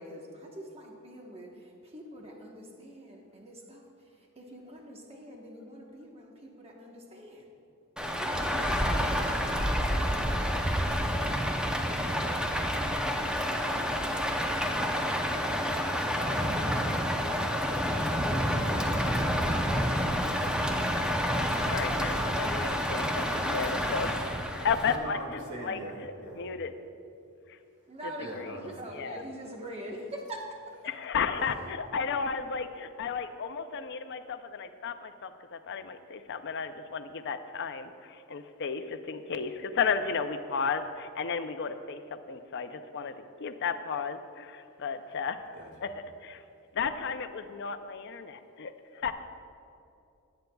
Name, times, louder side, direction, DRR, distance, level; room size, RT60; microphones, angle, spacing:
voice 1, 0.0-7.5 8.1-10.2 27.9-30.7, right 1 dB, 25° right, 0 dB, 1.2 m, -44 dB
Rain, 8.0-25.0, equal, 5° right, 0.6 m, -29 dB
voice 2, 21.7-25.8 26.4-26.7 27.5-27.6 28.0-28.7 28.9-29.2 30.8-45.4 45.8-45.9 46.2-46.4 46.7-49.1, left 5 dB, 55° left, 9 dB, 0.5 m, -34 dB
voice 3, 24.6-26.5 28.2-29.1 31.3-31.6 45.5-45.7, right 1 dB, 55° right, -1 dB, 2.1 m, -42 dB
18.5 x 9.1 x 2.3 m, 2.7 s
head